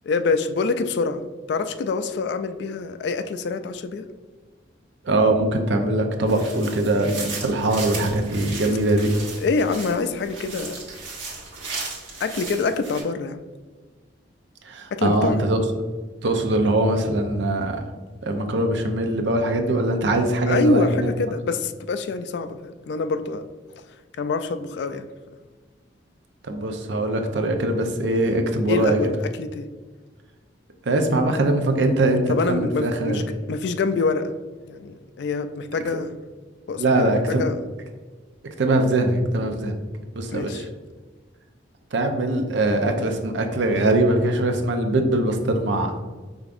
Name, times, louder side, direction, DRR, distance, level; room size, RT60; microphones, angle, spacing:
voice 1, 0.1-1.2 1.5-4.1 9.4-10.8 12.2-13.4 14.9-15.4 20.5-23.4 24.2-25.1 28.7-29.7 32.3-34.3 34.7-36.1 36.7-37.6 40.3-40.6, left 4 dB, 60° left, 10 dB, 0.3 m, -25 dB
voice 2, 5.0-9.1 14.6-15.6 16.2-17.8 18.2-21.1 26.4-29.1 30.9-33.2 36.8-37.4 38.6-39.8 40.1-40.7 41.9-45.9, right 2 dB, 70° right, 5 dB, 0.6 m, -22 dB
sound 1, 6.3-13.0, right 3 dB, 90° right, 1.4 m, -36 dB
5.0 x 3.6 x 2.5 m, 1.4 s
head